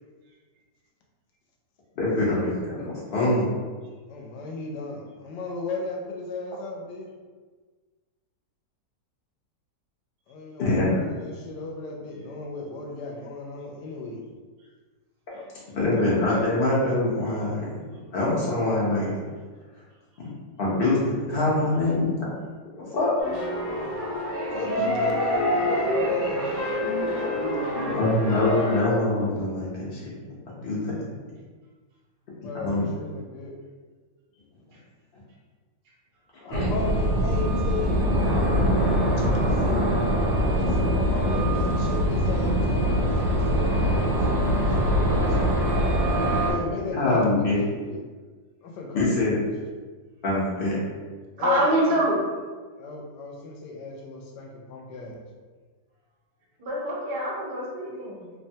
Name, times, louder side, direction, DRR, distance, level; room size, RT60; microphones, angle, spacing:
voice 1, 2.0-3.5 10.6-11.1 15.3-15.4 15.7-17.7 18.1-19.1 20.6-22.3 22.8-23.2 28.0-30.1 30.6-31.0 32.6-32.9 36.4-36.7 47.0-47.6 48.9-49.4 50.2-50.8, left 2 dB, 55° left, -6 dB, 0.6 m, -24 dB
voice 2, 4.1-7.1 10.3-14.2 24.5-28.6 32.3-33.5 36.4-38.3 39.2-39.9 40.5-45.9 46.4-48.0 48.6-49.5 51.4-52.1 52.7-55.2, left 3 dB, 80° left, 0 dB, 1.2 m, -35 dB
sound 1, 23.2-28.8, equal, 35° left, 0.9 m, -27 dB
sound 2, 36.5-46.5, equal, 80° right, 1.3 m, -23 dB
voice 3, 51.4-52.2 56.6-58.3, right 1 dB, 60° right, -6 dB, 0.5 m, -25 dB
3.0 x 2.2 x 2.7 m, 1.4 s
omnidirectional pair, 1.9 m